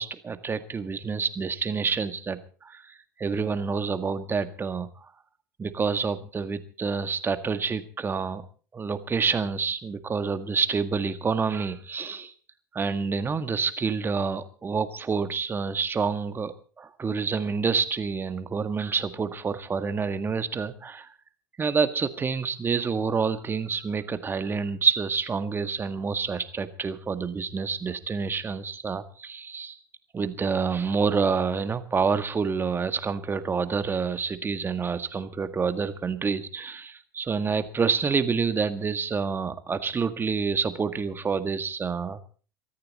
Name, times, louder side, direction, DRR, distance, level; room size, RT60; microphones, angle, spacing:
voice 1, 0.0-4.9 5.6-8.4 8.7-12.3 12.7-21.1 21.6-29.8 30.1-42.2, right 5 dB, 20° right, 11 dB, 1.7 m, -28 dB
22.5 x 13.5 x 4.2 m, 0.40 s
figure-of-eight pair, 80°, 11 cm